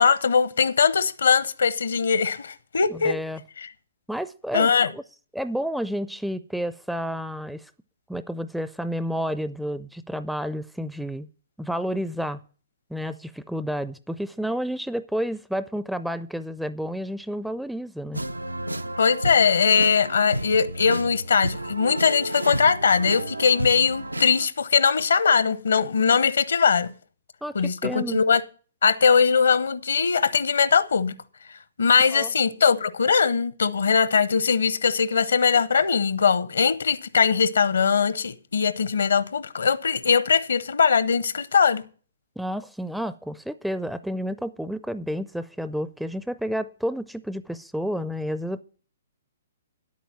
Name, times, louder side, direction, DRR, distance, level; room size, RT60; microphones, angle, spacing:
voice 1, 0.0-3.2 3.6-3.7 4.5-4.9 19.0-26.9 27.5-28.4 28.8-31.1 31.5-41.8, left 6 dB, 65° left, 0.8 m, -21 dB
voice 2, 2.9-3.4 4.1-5.0 5.3-7.7 8.1-11.3 11.6-12.4 12.9-18.2 27.4-28.2 32.1-32.3 42.4-48.6, equal, ahead, 0.4 m, -30 dB
sound 1, 18.1-24.5, right 1 dB, 85° right, 0.5 m, -31 dB
10.5 x 8.5 x 6.0 m
figure-of-eight pair, 120°, 0 cm